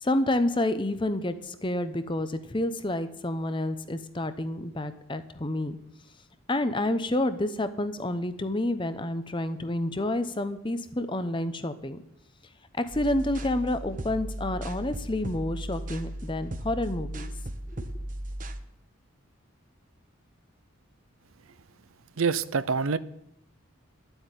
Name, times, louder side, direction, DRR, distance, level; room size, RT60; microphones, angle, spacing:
voice 1, 0.0-5.8 6.5-12.0 12.7-17.3 17.7-17.9, left 1 dB, 25° left, 11 dB, 0.8 m, -29 dB
sound 1, 12.9-18.6, right 1 dB, 40° right, 0.9 m, -36 dB
voice 2, 22.2-23.0, right 5 dB, 80° right, 16 dB, 0.6 m, -26 dB
11.5 x 8.0 x 9.1 m, 0.75 s
head